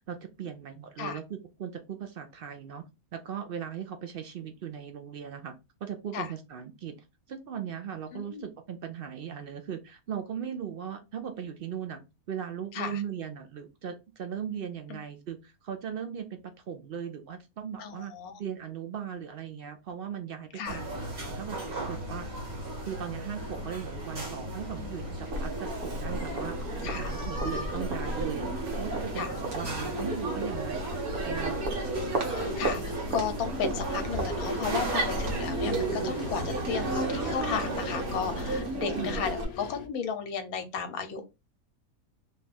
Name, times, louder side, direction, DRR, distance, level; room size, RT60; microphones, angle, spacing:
voice 1, 0.0-2.9 3.1-5.5 5.8-6.9 7.3-18.1 18.4-22.3 22.8-26.6 26.8-28.5 28.8-31.6 39.0-39.2, right 8 dB, 65° right, 6 dB, 0.5 m, -38 dB
voice 2, 8.1-8.4 12.7-13.0 14.9-15.0 17.8-18.4 20.5-20.8 24.8-25.1 26.8-27.1 29.1-29.3 31.5-41.2, left 6 dB, 80° left, 8 dB, 1.2 m, -35 dB
sound 1, 20.6-38.6, right 1 dB, 50° right, 1.6 m, -37 dB
Crowd, 25.3-39.4, right 2 dB, 85° right, 1.5 m, -33 dB
sound 2, 33.8-39.9, left 7 dB, 65° left, 0.9 m, -43 dB
3.3 x 2.3 x 4.1 m, 0.26 s
omnidirectional pair, 1.5 m